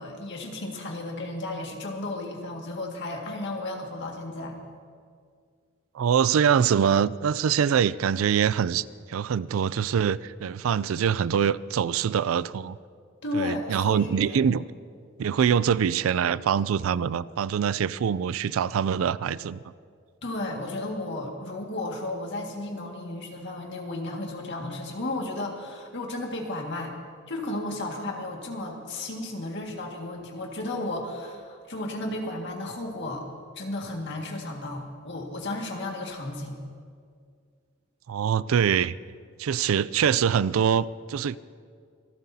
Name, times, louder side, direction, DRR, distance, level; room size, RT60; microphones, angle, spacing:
voice 1, 0.0-4.6 13.2-14.4 20.2-26.9 27.3-33.3 33.6-36.6, left 2 dB, 60° left, 1 dB, 1.9 m, -34 dB
voice 2, 5.9-12.8 13.3-14.6 15.2-19.6 38.1-39.0 39.4-41.4, right 7 dB, 85° right, 18 dB, 0.4 m, -24 dB
26.0 x 13.0 x 2.8 m, 2.1 s
head